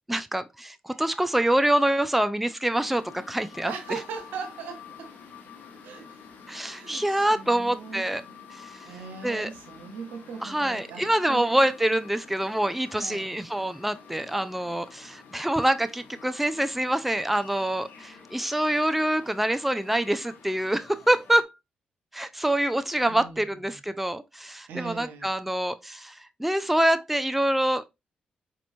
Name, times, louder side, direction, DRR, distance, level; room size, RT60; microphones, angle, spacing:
voice 1, 0.1-3.7 6.5-8.2 8.5-8.7 9.2-9.5 10.4-21.5 22.1-27.9, right 1 dB, 5° right, 0.4 m, -26 dB
sound 1, 2.7-21.4, left 6 dB, 70° left, 0.9 m, -49 dB
voice 2, 3.6-5.2 5.8-6.2 6.7-8.1 8.8-11.6 12.9-13.3 23.1-23.8 24.7-25.3, right 5 dB, 80° right, 0.9 m, -39 dB
4.2 x 3.0 x 2.6 m
supercardioid pair, 50°, 3 cm